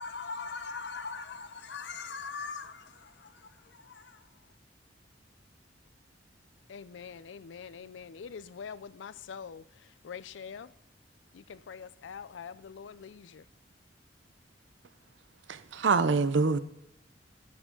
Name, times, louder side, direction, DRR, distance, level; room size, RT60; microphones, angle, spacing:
voice 1, 0.0-4.3, left 4 dB, 70° left, 0.8 m, -41 dB
voice 2, 6.7-9.6 10.0-10.7 11.3-13.4, left 6 dB, 85° left, 0.4 m, -44 dB
voice 3, 15.5-16.6, right 4 dB, 90° right, 0.6 m, -25 dB
12.5 x 7.4 x 3.8 m
head